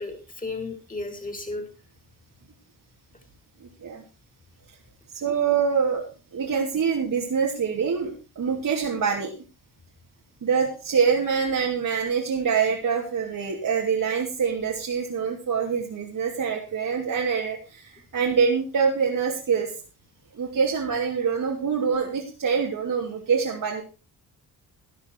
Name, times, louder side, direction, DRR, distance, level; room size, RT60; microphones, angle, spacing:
voice 1, 0.0-1.7, left 3 dB, 20° left, 5 dB, 5.1 m, -34 dB
voice 2, 3.6-4.0 5.1-6.0 6.3-9.3 10.4-19.7 20.3-23.8, right 6 dB, 55° right, -1 dB, 3.0 m, -25 dB
13.0 x 10.5 x 4.7 m, 0.33 s
cardioid pair, 85°, 39 cm